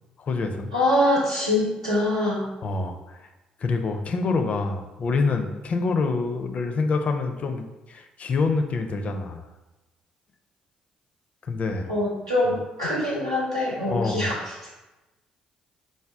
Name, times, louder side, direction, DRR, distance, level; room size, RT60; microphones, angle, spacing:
voice 1, 0.2-0.7 2.6-3.2 3.6-9.4 11.4-11.9 13.9-14.3, left 4 dB, 40° left, 5 dB, 0.4 m, -26 dB
voice 2, 0.7-2.5 11.9-14.7, left 1 dB, 85° right, -6 dB, 1.0 m, -24 dB
4.7 x 2.2 x 3.4 m, 1.1 s
figure-of-eight pair, 45°, 3 cm